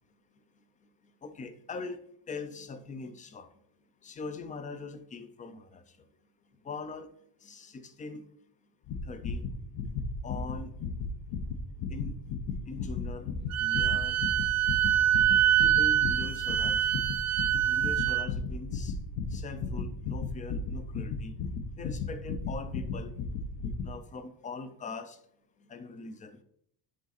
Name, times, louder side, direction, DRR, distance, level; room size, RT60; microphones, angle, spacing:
voice 1, 1.2-2.0 2.3-3.5 4.0-5.8 6.7-7.1 7.4-8.2 9.1-9.4 10.2-10.7 11.9-12.2 12.7-13.3 13.6-14.2 15.6-16.8 17.6-18.9 19.3-21.3 21.8-23.1 23.8-25.2 25.7-26.4, left 4 dB, 20° left, 11 dB, 0.3 m, -41 dB
sound 1, 8.9-23.9, left 4 dB, 70° left, 1.2 m, -35 dB
Wind instrument woodwind instrument, 13.5-18.3, right 11 dB, 40° right, 0.4 m, -25 dB
9.5 x 4.1 x 4.1 m, 0.70 s
cardioid pair, 175°, 41 cm